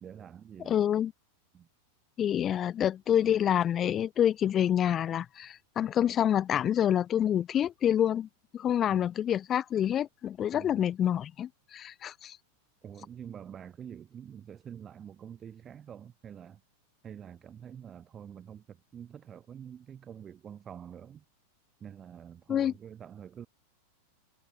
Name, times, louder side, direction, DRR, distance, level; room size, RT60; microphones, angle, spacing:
voice 1, 0.0-0.8 1.5-1.7 8.9-9.1 10.5-10.9 12.8-16.6 17.0-21.2 21.8-23.5, right 8 dB, 25° right, 2.0 m, -46 dB
voice 2, 0.7-1.1 2.2-8.3 8.5-12.4 22.5-22.7, left 10 dB, 25° left, 0.5 m, -27 dB
figure-of-eight pair, 90°, 0 cm